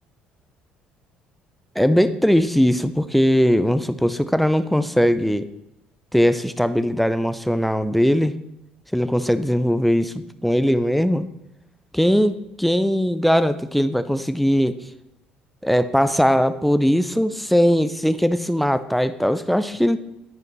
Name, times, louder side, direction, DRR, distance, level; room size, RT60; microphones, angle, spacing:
voice 1, 1.8-5.5 6.1-8.3 8.9-11.3 11.9-14.8 15.6-20.0, equal, ahead, 12 dB, 0.5 m, -20 dB
9.5 x 5.0 x 3.1 m, 0.84 s
hypercardioid pair, 60°, 4 cm